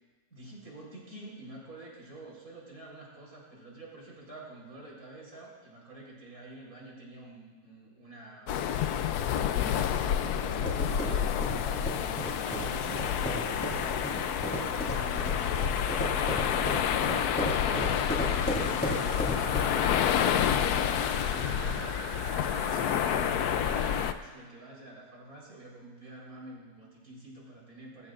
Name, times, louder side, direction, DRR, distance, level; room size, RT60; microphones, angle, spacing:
voice 1, 0.3-11.3 11.9-28.1, right 2 dB, 55° right, -4 dB, 4.6 m, -48 dB
sound 1, 8.5-24.1, left 9 dB, 75° left, 1.1 m, -29 dB
sound 2, 9.2-24.2 24.6-24.7, right 3 dB, 40° right, 1.2 m, -43 dB
sound 3, 10.7-19.9, equal, 5° left, 3.1 m, -36 dB
23.5 x 14.0 x 2.5 m, 1.4 s
omnidirectional pair, 1.8 m